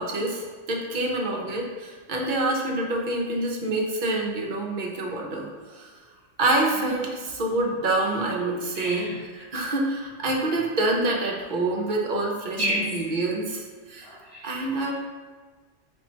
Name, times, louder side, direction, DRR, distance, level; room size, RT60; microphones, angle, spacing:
voice 1, 0.0-5.9 6.4-9.1 9.5-14.1 14.4-14.9, right 2 dB, 50° right, -1 dB, 0.7 m, -27 dB
voice 2, 6.7-7.0 8.0-9.4 12.6-13.2 14.0-14.6, equal, 70° left, -4 dB, 0.3 m, -33 dB
3.5 x 2.9 x 4.3 m, 1.4 s
omnidirectional pair, 1.3 m